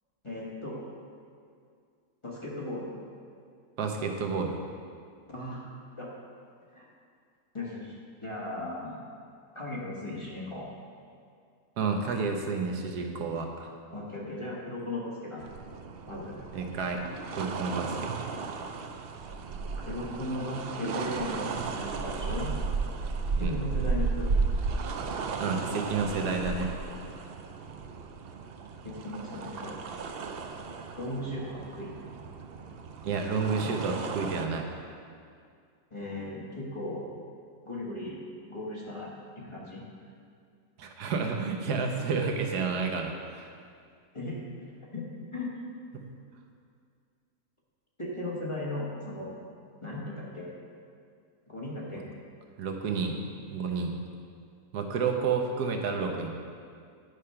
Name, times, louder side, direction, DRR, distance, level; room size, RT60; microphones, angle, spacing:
voice 1, 0.2-0.9 2.2-2.9 5.3-5.6 6.0-6.1 6.7-6.9 7.5-9.0 9.5-10.7 13.9-15.5 16.1-16.4 19.8-22.5 23.4-24.3 28.8-29.8 31.0-31.9 35.9-37.1 37.6-38.2 38.5-39.8 44.1-44.4 44.8-45.1 45.3-45.5 48.0-49.3 49.8-50.5 51.5-52.1, left 1 dB, 20° left, -5 dB, 1.5 m, -37 dB
voice 2, 3.8-4.6 11.8-13.7 16.5-17.0 17.3-18.3 23.4-23.6 25.4-26.7 33.0-34.7 40.8-43.5 45.9-46.0 52.6-53.2 53.5-53.9 54.7-56.3, right 5 dB, 90° right, 3 dB, 1.4 m, -30 dB
sound 1, 15.4-34.5, right 4 dB, 75° right, 0.5 m, -34 dB
9.8 x 5.1 x 5.6 m, 2.3 s
omnidirectional pair, 1.7 m